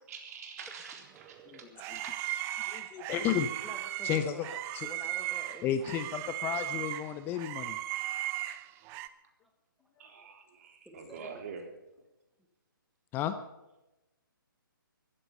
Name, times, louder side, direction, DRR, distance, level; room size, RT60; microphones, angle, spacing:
voice 1, 0.1-1.7 2.0-2.2 10.0-11.7, right 6 dB, 45° right, 3 dB, 3.7 m, -46 dB
sound 1, 1.2-9.1, right 15 dB, 20° right, 0.7 m, -37 dB
voice 2, 2.7-3.5 4.0-4.5 4.7-4.9 5.6-7.8 13.1-13.4, left 10 dB, 20° left, 11 dB, 0.7 m, -32 dB
voice 3, 3.6-6.1 9.4-9.5 10.8-11.4, right 1 dB, ahead, 2 dB, 1.3 m, -49 dB
15.5 x 14.0 x 5.5 m, 0.98 s
figure-of-eight pair, 140°, 12 cm